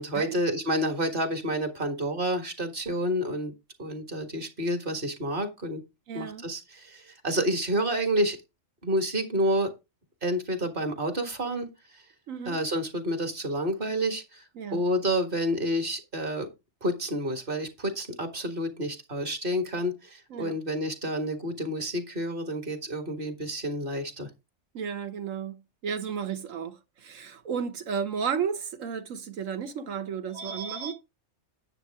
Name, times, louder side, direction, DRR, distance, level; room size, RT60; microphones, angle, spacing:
voice 1, 0.0-3.5 3.8-5.8 6.1-8.4 8.8-9.7 10.2-11.7 12.5-14.4 14.7-16.5 16.8-24.3 30.3-30.9, equal, 40° right, 1.9 m, -29 dB
voice 2, 6.1-6.4 12.3-12.6 14.6-14.8 20.3-20.6 24.7-30.9, right 7 dB, 70° right, 1.4 m, -33 dB
9.8 x 7.8 x 3.5 m
omnidirectional pair, 1.4 m